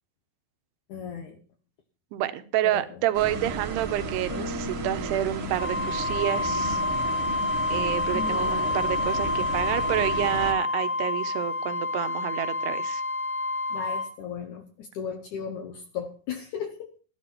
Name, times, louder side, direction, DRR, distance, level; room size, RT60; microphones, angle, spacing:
voice 1, 0.9-1.4 2.6-2.8 8.1-8.8 13.7-16.9, left 7 dB, 75° left, 7 dB, 1.8 m, -36 dB
voice 2, 2.1-6.8 7.7-13.0, right 13 dB, 80° right, 11 dB, 2.8 m, -29 dB
sound 1, 3.1-10.5, right 4 dB, 65° right, 1.4 m, -34 dB
Bass guitar, 4.3-6.6, left 3 dB, 40° left, 2.7 m, -40 dB
Wind instrument woodwind instrument, 5.5-14.1, left 3 dB, 15° right, 1.4 m, -28 dB
14.5 x 12.0 x 4.5 m, 0.39 s
omnidirectional pair, 4.9 m